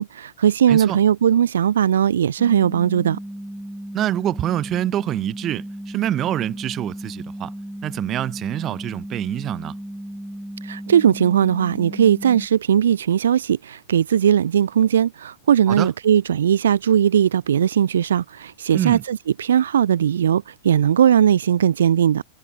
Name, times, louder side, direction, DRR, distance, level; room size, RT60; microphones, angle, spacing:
voice 1, 0.0-3.2 10.6-22.2, right 9 dB, 65° right, 3.0 m, -18 dB
voice 2, 0.7-1.0 3.9-7.5 7.8-9.8 15.7-15.9 18.7-19.0, right 12 dB, 30° right, 5.5 m, -25 dB
sound 1, 2.4-12.5, right 1 dB, ahead, 3.6 m, -35 dB
figure-of-eight pair, 90°, 0 cm